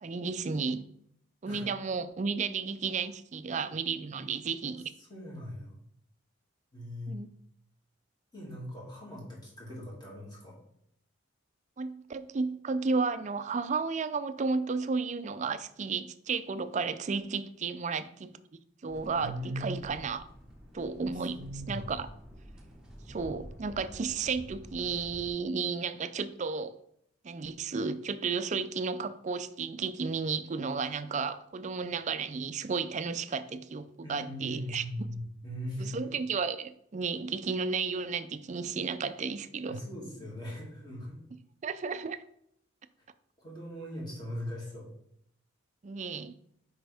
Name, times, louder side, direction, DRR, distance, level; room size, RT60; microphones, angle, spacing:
voice 1, 0.0-0.8 1.4-4.8 7.1-7.3 11.8-18.4 18.8-20.2 20.7-21.4 21.7-22.1 23.1-26.8 27.2-34.8 35.8-39.8 41.6-42.2 45.8-46.3, right 5 dB, 35° right, 0.4 m, -33 dB
voice 2, 5.0-5.7 6.7-7.2 8.3-10.6 19.1-19.8 21.1-21.9 34.0-36.1 39.7-41.2 43.4-44.9, equal, 20° left, 2.3 m, -40 dB
sound 1, 18.9-25.3, equal, 5° right, 1.1 m, -49 dB
7.8 x 5.1 x 3.4 m
head